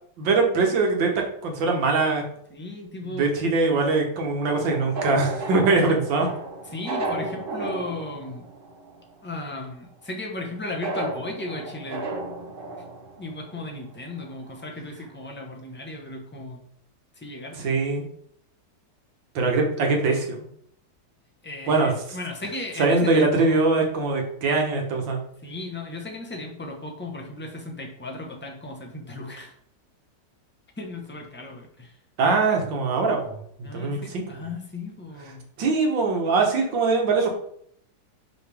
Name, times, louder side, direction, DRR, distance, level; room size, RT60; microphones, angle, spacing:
voice 1, 0.2-1.1 1.4-2.2 3.0-6.3 17.5-18.1 19.4-20.5 21.7-22.2 22.8-25.2 32.2-34.2 35.6-37.3, right 3 dB, 85° right, 2 dB, 1.9 m, -22 dB
voice 2, 2.5-3.4 5.7-6.0 6.7-8.4 9.2-12.0 12.7-12.8 13.2-16.6 17.2-17.7 21.4-23.6 25.4-29.5 30.8-31.9 33.6-35.4, left 2 dB, 10° left, 0 dB, 0.5 m, -36 dB
sound 1, 4.4-9.1 9.4-9.5 10.8-13.7 14.2-14.3 14.5-14.6, right 2 dB, 45° right, 0.8 m, -33 dB
5.5 x 5.1 x 3.4 m, 0.66 s
omnidirectional pair, 2.0 m